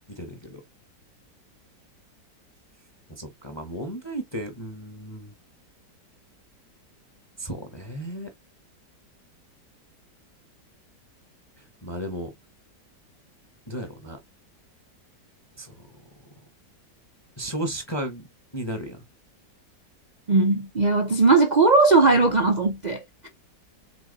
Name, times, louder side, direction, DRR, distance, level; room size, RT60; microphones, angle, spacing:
voice 1, 0.1-0.6 3.1-5.3 7.4-8.3 11.6-12.3 13.7-14.2 15.5-16.4 17.4-18.3 18.5-19.0, right 1 dB, 15° left, 1.1 m, -34 dB
voice 2, 20.3-23.3, right 3 dB, 75° right, 0.4 m, -19 dB
6.2 x 4.1 x 4.0 m
omnidirectional pair, 1.9 m